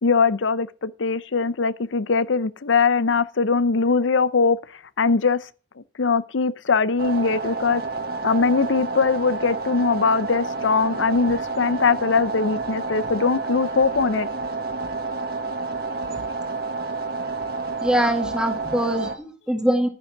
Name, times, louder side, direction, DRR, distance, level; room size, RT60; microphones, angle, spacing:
voice 1, 0.0-4.6 5.0-5.4 6.0-7.8 8.2-14.3, left 4 dB, 80° left, 0.7 m, -21 dB
Ambient Telecaster, 7.0-19.1, right 3 dB, 55° right, 1.7 m, -29 dB
voice 2, 17.8-19.9, equal, 5° right, 1.8 m, -23 dB
10.5 x 9.9 x 5.9 m
head